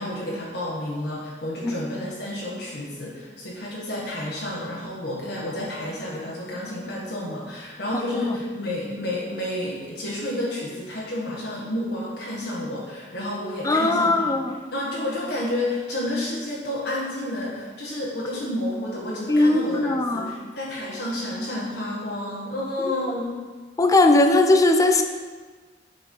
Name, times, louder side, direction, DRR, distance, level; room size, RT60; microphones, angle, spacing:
voice 1, 0.0-14.4 14.7-23.4, left 1 dB, 65° left, -5 dB, 1.4 m, -30 dB
voice 2, 13.6-14.6 19.3-20.4 23.8-25.0, left 2 dB, 20° left, 5 dB, 0.6 m, -19 dB
7.8 x 4.6 x 5.4 m, 1.4 s
head